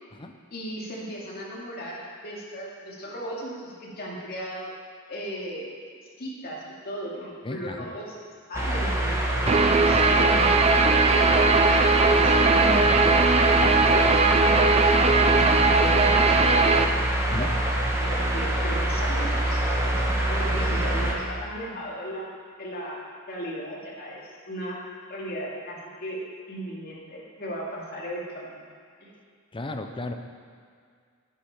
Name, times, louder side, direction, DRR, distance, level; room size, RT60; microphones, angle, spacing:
voice 1, 0.5-4.7 5.1-5.7 6.2-8.1 8.5-10.5 11.0-13.3 13.7-17.6 18.0-19.8 20.3-28.7 29.0-29.1, equal, 45° left, -4 dB, 2.5 m, -36 dB
voice 2, 7.4-7.9 17.3-17.5 29.5-30.1, left 2 dB, 25° left, 5 dB, 0.7 m, -34 dB
sound 1, 8.5-21.1, right 1 dB, 15° right, 1.3 m, -25 dB
Guitar, 9.5-16.8, right 3 dB, 30° right, 0.5 m, -20 dB
10.5 x 10.0 x 4.9 m, 2.1 s
head